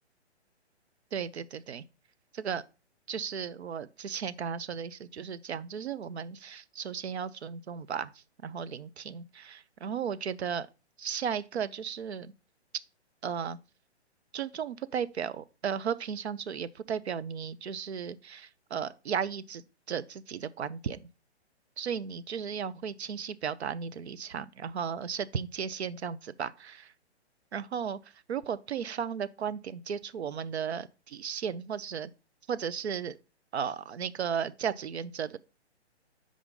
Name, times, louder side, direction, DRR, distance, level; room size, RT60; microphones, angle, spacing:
voice 1, 1.1-1.8 2.3-2.6 3.1-10.7 11.0-12.3 13.2-13.6 14.3-21.1 21.8-26.9 27.5-28.0 28.3-32.1 32.5-33.2 33.5-35.4, right 7 dB, 70° right, 0.6 m, -35 dB
6.8 x 5.0 x 3.7 m
figure-of-eight pair, 130°, 34 cm